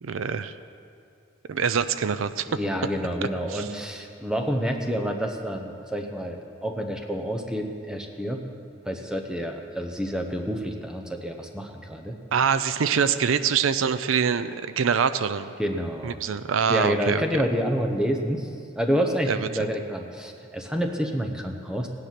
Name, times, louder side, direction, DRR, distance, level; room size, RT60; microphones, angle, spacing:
voice 1, 0.0-0.5 1.5-2.5 3.5-3.7 12.3-15.5 16.0-17.4 19.3-19.7, right 6 dB, 90° right, 13 dB, 0.5 m, -25 dB
voice 2, 2.5-8.4 8.9-12.2 15.6-16.2 16.7-18.5 18.8-21.9, equal, 5° right, 3 dB, 0.8 m, -28 dB
17.0 x 9.9 x 5.9 m, 2.5 s
head